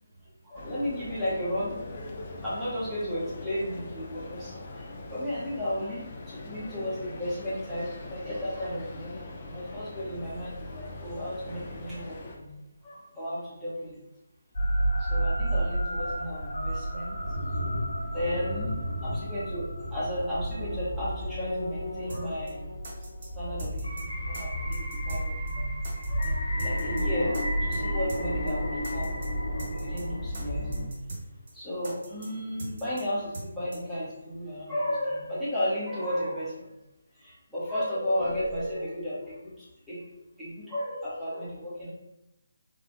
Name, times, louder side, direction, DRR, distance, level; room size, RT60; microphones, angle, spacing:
voice 1, 0.4-1.7 2.4-12.5 12.8-14.0 14.8-17.2 18.0-22.7 23.4-25.8 26.0-29.1 29.5-30.7 31.5-36.7 37.2-40.0 40.4-41.9, equal, ahead, -13 dB, 0.9 m, -34 dB
sound 1, 0.5-12.4, left 2 dB, 35° left, 0.4 m, -42 dB
sound 2, 14.5-30.9, equal, 60° left, 1.1 m, -31 dB
sound 3, 22.1-22.2 22.5-22.6 22.8-23.3 23.6-24.0 24.3-24.4 24.7-25.2 25.5-25.6 25.8-26.3 26.6-27.0 27.3-27.4 27.7-27.8 28.1-28.2 28.5-28.6 28.8-29.3 29.6-30.0 30.3-30.4 30.7-31.2 31.5-31.6 31.8-32.3 32.6-33.0 33.3-33.5 33.7-33.8, right 2 dB, 45° right, 0.7 m, -40 dB
3.4 x 2.5 x 2.6 m, 0.92 s
figure-of-eight pair, 150°, 0 cm